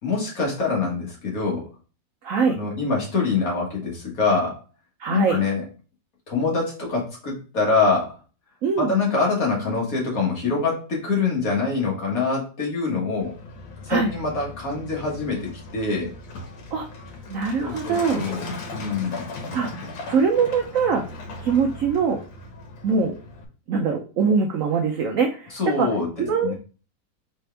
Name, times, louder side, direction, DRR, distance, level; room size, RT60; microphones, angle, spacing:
voice 1, 0.0-1.7 2.5-4.6 5.1-5.6 6.3-8.2 8.8-13.4 13.8-16.1 17.6-18.4 18.7-19.2 25.5-26.1 26.4-26.5, left 4 dB, 50° left, -2 dB, 1.8 m, -24 dB
voice 2, 2.2-2.6 5.0-5.4 8.6-8.9 13.9-14.1 16.7-16.9 17.3-18.2 19.5-19.7 20.0-21.0 21.4-22.2 22.8-23.1 23.7-25.9 26.2-26.5, right 5 dB, 75° right, 3 dB, 0.7 m, -22 dB
Truck, 13.2-23.5, left 2 dB, 85° left, 1.7 m, -38 dB
4.5 x 3.4 x 3.3 m, 0.36 s
omnidirectional pair, 2.0 m